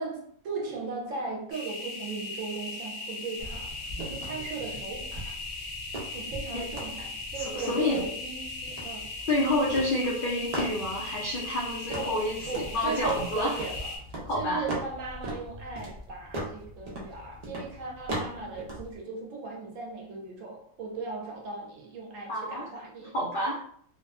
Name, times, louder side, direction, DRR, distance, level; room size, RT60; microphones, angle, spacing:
voice 1, 0.0-5.4 6.1-9.1 11.9-23.2, right 4 dB, 70° right, 0.9 m, -37 dB
sound 1, 1.5-14.0, left 3 dB, 60° left, 0.9 m, -39 dB
sound 2, 3.4-19.0, right 1 dB, 85° right, 0.3 m, -40 dB
voice 2, 7.3-8.0 9.3-13.6 14.2-14.6 22.3-22.7 23.1-23.6, left 1 dB, 80° left, 0.4 m, -29 dB
2.5 x 2.2 x 2.3 m
omnidirectional pair, 1.6 m